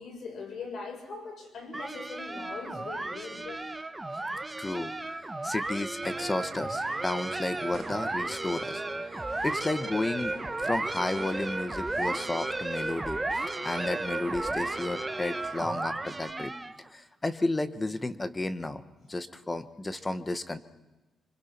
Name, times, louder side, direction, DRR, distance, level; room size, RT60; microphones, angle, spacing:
voice 1, 0.0-3.7, left 4 dB, 60° left, 2 dB, 7.4 m, -41 dB
sound 1, 1.7-16.9, right 2 dB, 10° right, 1.2 m, -34 dB
voice 2, 4.6-16.5 16.9-18.8 19.1-20.6, left 2 dB, 20° left, 11 dB, 1.3 m, -33 dB
sound 2, 6.0-16.3, right 5 dB, 40° right, 2.1 m, -44 dB
26.0 x 26.0 x 6.0 m, 1.1 s
cardioid pair, 135°, 0 cm